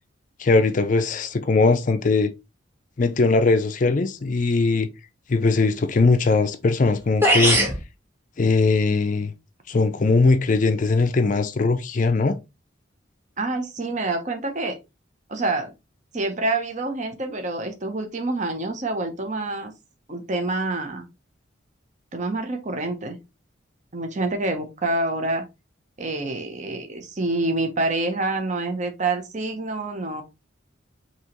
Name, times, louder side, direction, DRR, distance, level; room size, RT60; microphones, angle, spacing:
voice 1, 0.4-2.3 3.0-4.9 5.3-7.6 8.4-9.3 9.7-12.4, left 3 dB, 40° left, 0.4 m, -20 dB
sound 1, 6.8-6.9 7.2-7.8, right 1 dB, 10° right, 1.1 m, -18 dB
voice 2, 13.4-14.8 15.3-15.7 16.1-19.7 20.1-21.1 22.1-23.2 23.9-25.5 26.0-30.2, right 2 dB, 40° right, 0.8 m, -27 dB
5.5 x 2.9 x 3.0 m
head